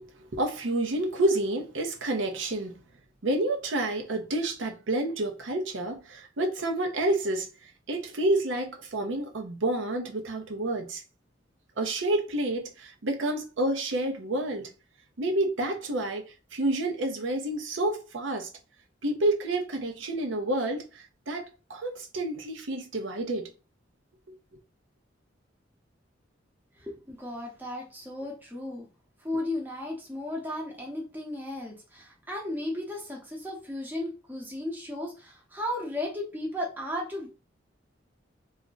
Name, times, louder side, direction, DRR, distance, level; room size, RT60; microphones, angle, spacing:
voice 1, 0.0-2.8 3.2-11.0 11.8-14.7 15.2-18.5 19.0-23.5, right 1 dB, 80° right, 0.7 m, -29 dB
voice 2, 26.8-28.9 29.2-37.3, left 1 dB, 10° right, 0.7 m, -35 dB
2.4 x 2.1 x 3.7 m
head